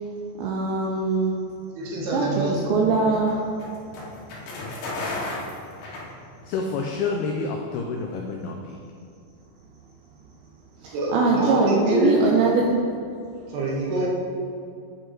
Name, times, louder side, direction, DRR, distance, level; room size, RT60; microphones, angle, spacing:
voice 1, 0.4-1.3 2.1-3.5 10.8-12.7, right 4 dB, 90° right, -1 dB, 2.2 m, -22 dB
voice 2, 1.8-2.6 10.9-12.5 13.5-14.1, equal, 70° right, -4 dB, 3.2 m, -25 dB
sound 1, 2.2-6.6, left 2 dB, 70° left, 3.3 m, -34 dB
voice 3, 6.5-8.8, left 4 dB, 85° left, 1 dB, 2.3 m, -28 dB
8.8 x 4.8 x 4.5 m, 2.5 s
omnidirectional pair, 5.2 m